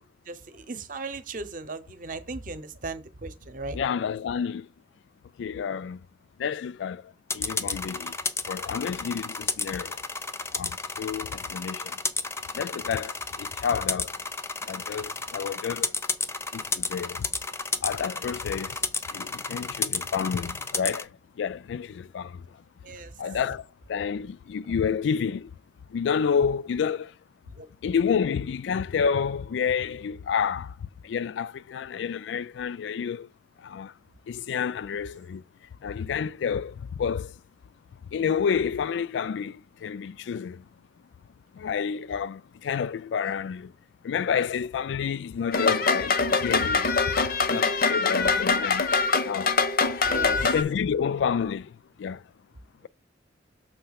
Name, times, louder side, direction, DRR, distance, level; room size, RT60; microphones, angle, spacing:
voice 1, 0.3-3.8 22.8-23.1 27.6-27.7 50.1-50.5, right 3 dB, 50° right, 0.8 m, -37 dB
voice 2, 3.7-4.7 5.4-6.0 6.4-8.2 8.5-10.0 10.5-12.0 12.5-14.1 14.6-15.9 16.5-17.3 17.8-18.8 19.1-21.1 21.4-22.4 23.2-25.5 25.9-27.1 27.8-30.7 31.0-33.3 33.6-33.9 34.3-35.4 35.8-37.3 38.1-40.6 41.5-43.7 44.0-46.9 47.5-48.9 49.2-49.6 50.4-51.7 52.0-52.2, left 7 dB, 80° left, 0.3 m, -29 dB
sound 1, 7.3-21.0, left 4 dB, 15° left, 0.5 m, -32 dB
sound 2, 45.5-50.6, left 4 dB, 55° left, 0.7 m, -24 dB
6.6 x 3.2 x 5.8 m
head